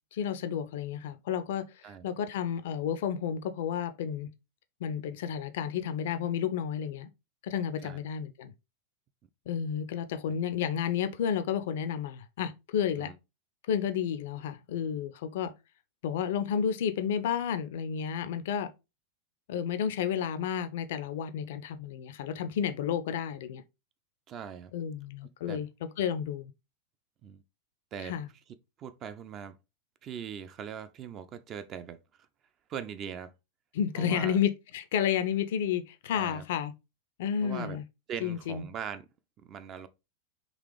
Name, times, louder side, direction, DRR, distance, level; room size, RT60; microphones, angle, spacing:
voice 1, 0.1-4.3 4.8-7.1 7.4-8.5 9.5-13.1 13.7-15.5 16.0-18.7 19.5-23.6 24.7-26.5 28.0-28.3 33.7-36.7 37.2-37.8 38.2-38.6, left 8 dB, 55° left, 0.4 m, -31 dB
voice 2, 24.3-24.7 25.5-25.6 27.2-27.4 27.9-28.1 28.8-29.6 30.0-32.0 32.7-33.3 34.0-34.4 36.1-36.4 37.4-37.8 38.1-39.1 39.5-39.9, right 8 dB, 30° right, 0.4 m, -40 dB
3.9 x 2.9 x 3.1 m
figure-of-eight pair, 90°, 0 cm